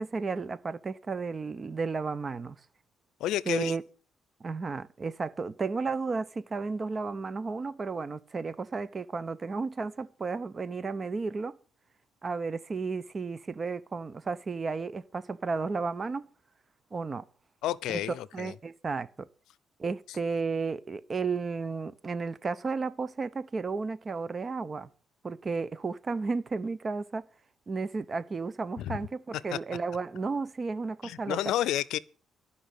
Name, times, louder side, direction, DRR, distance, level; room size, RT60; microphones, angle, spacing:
voice 1, 0.0-2.6 3.5-3.8 4.4-11.6 12.2-16.2 16.9-17.2 17.9-18.0 18.3-19.3 19.8-24.9 25.2-27.2 27.7-31.4, right 4 dB, 35° right, 0.8 m, -33 dB
voice 2, 3.2-3.7 17.6-18.5 28.8-29.0 29.5-29.6 31.0-32.0, left 13 dB, 85° left, 0.5 m, -30 dB
12.5 x 5.5 x 8.3 m
cardioid pair, 90°, 0 cm